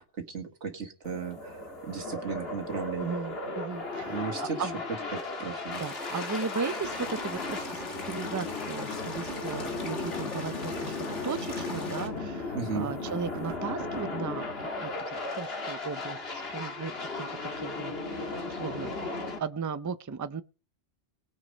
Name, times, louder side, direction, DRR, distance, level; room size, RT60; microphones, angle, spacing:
voice 1, 0.0-1.6 1.8-3.2 4.1-4.6 5.1-5.8 12.5-12.9, right 6 dB, 75° right, 1.8 m, -35 dB
sound 1, 1.0-19.4, left 3 dB, 60° left, 1.9 m, -36 dB
voice 2, 3.0-4.8 5.8-14.5 14.8-20.4, right 5 dB, 25° right, 0.4 m, -37 dB
sound 2, 5.7-12.1, left 4 dB, 80° left, 2.0 m, -40 dB
sound 3, 6.8-8.6 9.1-10.4 10.8-11.7 12.2-12.4 13.1-14.1, right 6 dB, 60° right, 1.4 m, -45 dB
19.5 x 6.5 x 5.3 m
omnidirectional pair, 1.2 m